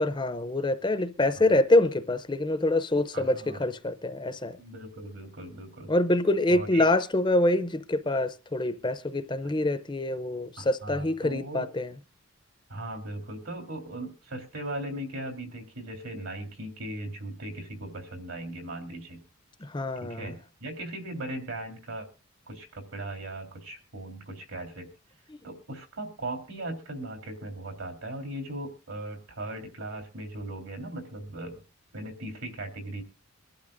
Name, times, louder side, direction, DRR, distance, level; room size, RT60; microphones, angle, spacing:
voice 1, 0.0-4.6 5.9-11.9 19.6-20.3 25.3-25.4, left 2 dB, 20° left, 0.6 m, -25 dB
voice 2, 3.1-3.6 4.6-5.9 6.5-6.8 10.6-11.7 12.7-19.3 20.0-22.1 22.5-24.9 25.4-31.6 31.9-33.0, right 1 dB, 75° right, 3.2 m, -38 dB
24.0 x 12.0 x 2.5 m
head